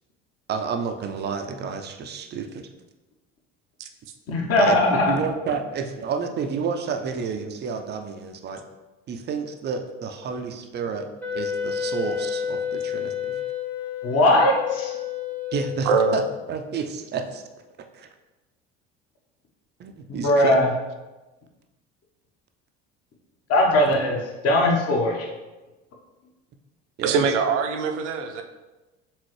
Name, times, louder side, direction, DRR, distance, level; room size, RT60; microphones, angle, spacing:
voice 1, 0.5-2.7 4.6-8.6 9.1-13.4 15.5-16.2 16.5-17.4 17.9-18.1 19.8-20.6 27.0-27.3, right 5 dB, 30° right, 6 dB, 0.4 m, -30 dB
voice 2, 4.3-5.1 14.0-15.0 20.1-20.7 23.5-25.3, left 1 dB, 40° left, 0 dB, 1.1 m, -20 dB
Wind instrument woodwind instrument, 11.2-16.4, left 8 dB, 5° left, 0.7 m, -30 dB
voice 3, 15.9-16.2 27.0-28.4, right 5 dB, 70° right, 6 dB, 0.6 m, -22 dB
4.4 x 3.7 x 3.1 m, 1.1 s
figure-of-eight pair, 65°, 37 cm